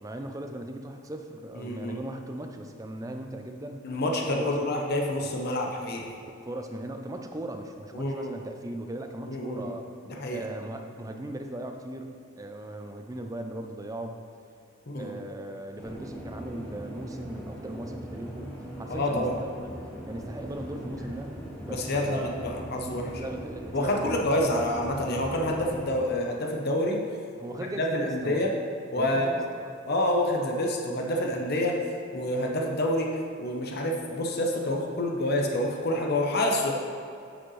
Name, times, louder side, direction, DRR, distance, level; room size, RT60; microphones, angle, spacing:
voice 1, 0.0-3.9 4.4-4.5 5.2-5.3 6.4-9.9 10.3-14.2 14.9-18.5 18.8-19.7 20.1-22.4 23.0-24.6 27.4-28.4 29.0-29.8, right 1 dB, 15° right, 5 dB, 0.4 m, -38 dB
voice 2, 1.6-2.0 3.8-6.2 7.9-8.3 9.3-9.7 10.1-10.4 14.9-15.1 18.9-19.3 21.7-23.1 23.7-27.0 27.8-28.5 28.9-29.4 29.9-31.8 32.1-33.1 33.4-36.7, left 1 dB, 50° left, 1 dB, 0.7 m, -28 dB
sound 1, 15.8-25.9, right 1 dB, 5° left, 1.0 m, -40 dB
9.9 x 5.1 x 3.2 m, 2.6 s
head